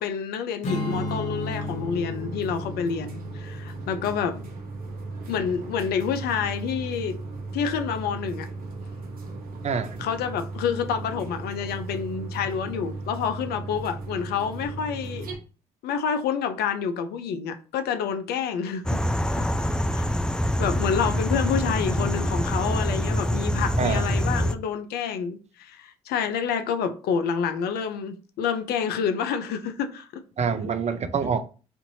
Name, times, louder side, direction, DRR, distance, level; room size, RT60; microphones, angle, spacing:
voice 1, 0.0-4.5 5.3-7.2 7.5-8.5 10.0-15.3 15.8-20.1 20.6-30.2, left 7 dB, 70° left, 0.6 m, -28 dB
Strum, 0.6-6.0, left 2 dB, 45° left, 1.1 m, -35 dB
sound 1, 0.9-15.4, right 3 dB, 60° right, 1.0 m, -36 dB
voice 2, 9.6-10.0 23.8-24.0 30.4-31.5, right 5 dB, 40° right, 0.6 m, -26 dB
sound 2, 18.8-24.5, equal, 5° left, 0.3 m, -25 dB
4.4 x 2.6 x 2.7 m
hypercardioid pair, 50°, 17 cm